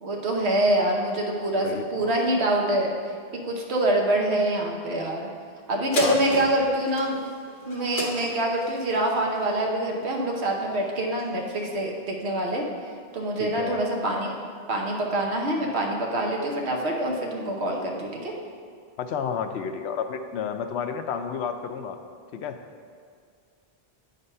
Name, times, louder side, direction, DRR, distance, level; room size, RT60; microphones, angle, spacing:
voice 1, 0.0-2.9 3.4-5.3 5.7-7.2 7.7-12.6 13.1-14.3 14.7-18.3, right 1 dB, 85° right, 0 dB, 1.2 m, -25 dB
voice 2, 1.6-2.2 6.0-6.4 13.4-13.8 19.0-22.0 22.3-22.6, left 7 dB, 90° left, 7 dB, 0.9 m, -31 dB
sound 1, 5.9-10.7 11.2-11.3, left 1 dB, 70° left, 1.3 m, -35 dB
8.6 x 4.0 x 5.4 m, 2.1 s
omnidirectional pair, 1.1 m